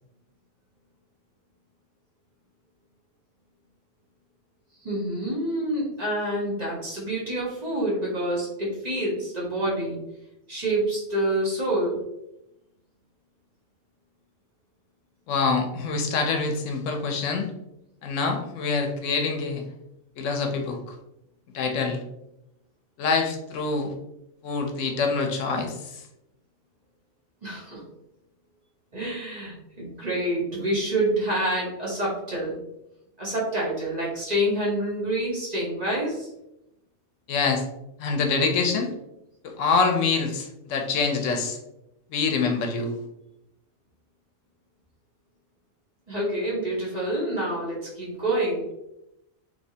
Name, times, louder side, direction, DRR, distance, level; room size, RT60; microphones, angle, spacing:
voice 1, 4.8-10.0 10.5-12.0 27.4-27.8 28.9-32.6 33.2-36.3 46.1-48.7, right 1 dB, 35° right, -5 dB, 1.0 m, -27 dB
voice 2, 15.3-17.5 18.0-19.6 20.2-20.9 21.5-22.0 23.0-23.9 24.4-26.0 37.3-37.6 38.0-38.9 39.4-41.6 42.1-43.0, left 4 dB, 75° left, 4 dB, 0.9 m, -25 dB
3.2 x 3.0 x 2.7 m, 0.85 s
omnidirectional pair, 1.4 m